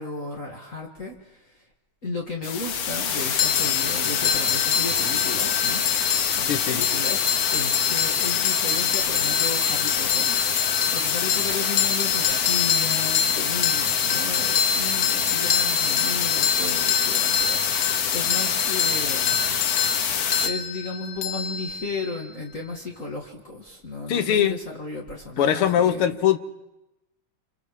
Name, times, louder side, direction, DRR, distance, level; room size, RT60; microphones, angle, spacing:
voice 1, 0.0-1.6 2.0-10.4 10.9-19.6 19.8-19.9 20.4-26.2, left 3 dB, 40° left, 0 dB, 2.4 m, -34 dB
sound 1, 2.4-20.5, left 7 dB, 55° left, 1.3 m, -26 dB
sound 2, 3.4-22.2, left 7 dB, 70° left, 1.8 m, -26 dB
voice 2, 6.5-6.8 24.1-24.6 25.4-26.4, left 10 dB, 90° left, 10 dB, 2.0 m, -21 dB
28.5 x 27.0 x 4.9 m, 0.96 s
omnidirectional pair, 2.3 m